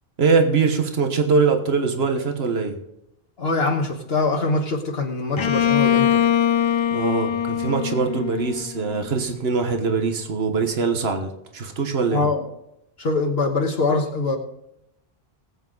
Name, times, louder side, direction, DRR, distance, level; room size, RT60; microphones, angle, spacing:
voice 1, 0.2-2.8 6.9-12.3, right 4 dB, 80° right, 5 dB, 1.5 m, -22 dB
voice 2, 3.4-6.3 12.1-12.4 13.0-14.4, left 3 dB, 70° left, 2 dB, 1.5 m, -23 dB
Bowed string instrument, 5.4-9.1, left 9 dB, 40° left, 0.4 m, -22 dB
19.5 x 8.4 x 3.9 m, 0.80 s
omnidirectional pair, 1.0 m